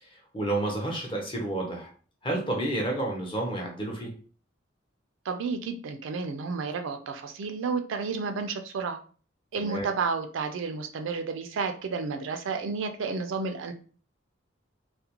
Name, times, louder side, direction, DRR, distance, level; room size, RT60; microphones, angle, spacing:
voice 1, 0.0-1.9 2.2-4.1 9.6-9.9, right 2 dB, 25° left, 0 dB, 0.6 m, -30 dB
voice 2, 5.3-9.0 9.5-13.7, right 4 dB, 70° right, 7 dB, 0.4 m, -31 dB
2.4 x 2.1 x 2.8 m, 0.40 s
head